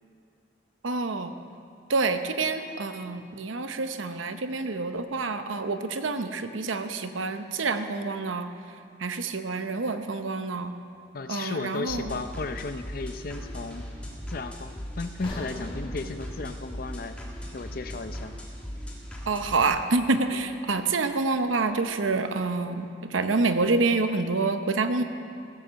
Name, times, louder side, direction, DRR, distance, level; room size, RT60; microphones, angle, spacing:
voice 1, 0.8-1.3 1.9-8.5 9.0-10.7 11.3-12.1 19.3-25.0, right 3 dB, 90° right, 8 dB, 0.8 m, -27 dB
voice 2, 11.1-13.9 14.3-17.2 17.5-18.3, left 3 dB, 50° left, 9 dB, 0.6 m, -35 dB
sound 1, 11.9-19.7, equal, 5° left, 1.5 m, -39 dB
sound 2, 15.2-19.3 19.6-19.8 20.4-20.5, left 1 dB, 25° left, 1.9 m, -44 dB
15.5 x 8.1 x 6.9 m, 2.4 s
head